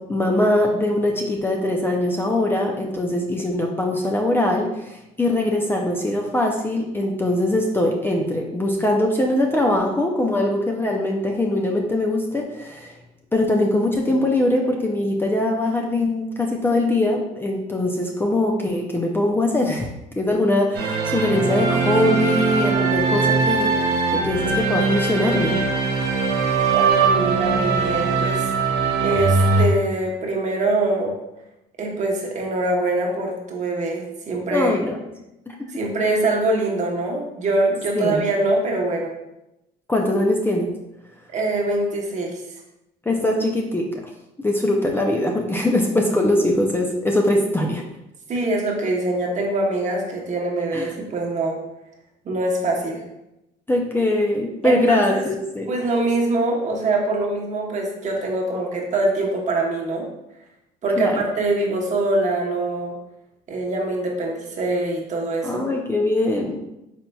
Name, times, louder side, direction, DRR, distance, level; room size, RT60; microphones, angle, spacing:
voice 1, 0.1-12.9 13.3-19.9 20.2-23.7 24.1-25.6 34.5-35.0 35.5-35.6 38.0-38.2 39.9-40.7 43.1-43.9 44.4-47.8 50.7-50.9 53.7-55.7 61.0-61.2 65.4-66.7, left 1 dB, 15° left, 0 dB, 0.4 m, -22 dB
sound 1, 20.7-29.7, right 4 dB, 80° right, 0.7 m, -21 dB
voice 2, 26.7-28.5 29.0-31.1 31.8-34.8 35.7-39.1 41.3-42.4 48.3-51.6 52.2-53.0 54.6-55.2 55.7-60.1 60.8-62.9 63.5-65.7, right 2 dB, 45° right, 0 dB, 1.0 m, -23 dB
4.3 x 3.9 x 2.3 m, 0.90 s
cardioid pair, 110°, 17 cm